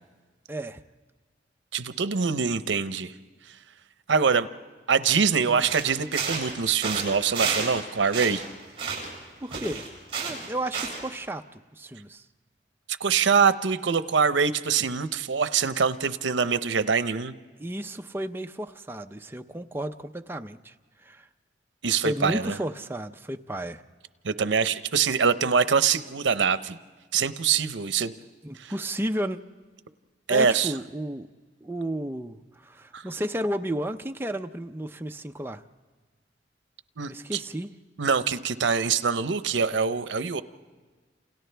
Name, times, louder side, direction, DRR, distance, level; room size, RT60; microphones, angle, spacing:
voice 1, 0.5-0.8 5.5-5.7 9.4-9.8 10.2-12.2 17.6-20.7 21.0-21.3 22.0-23.8 28.4-29.4 30.3-31.3 31.6-35.6 37.1-37.7, right 1 dB, 10° right, 6 dB, 0.5 m, -33 dB
voice 2, 1.7-3.1 4.1-4.5 4.9-8.4 13.0-17.3 21.8-22.6 24.2-26.8 27.1-28.1 28.6-28.7 30.3-30.7 32.9-33.0 37.0-37.4 38.0-40.4, right 6 dB, 80° right, 12 dB, 0.7 m, -24 dB
sound 1, 5.6-6.6 6.8-7.8 8.0-9.2 9.5-11.1, right 5 dB, 30° right, 7.7 m, -31 dB
30.0 x 28.0 x 3.4 m, 1.4 s
head